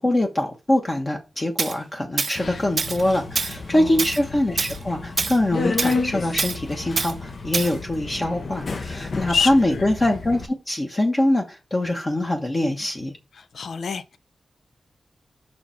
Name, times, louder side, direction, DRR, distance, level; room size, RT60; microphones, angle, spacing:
voice 1, 0.0-13.2, left 1 dB, 30° left, 1.1 m, -23 dB
Tools, 1.6-1.7 2.2-2.4 2.8-3.0 3.3-3.6 4.0-4.2 4.6-4.8 5.2-5.4 5.8-6.0 6.4-6.6 7.0-7.1 7.5-7.7, right 4 dB, 45° right, 0.3 m, -25 dB
Subway metro underground, 2.3-10.5, left 3 dB, 55° left, 0.8 m, -31 dB
voice 2, 3.7-4.0 9.3-9.8 13.4-14.2, left 5 dB, 85° left, 0.6 m, -27 dB
6.1 x 4.8 x 5.7 m
wide cardioid pair, 135°, 0 cm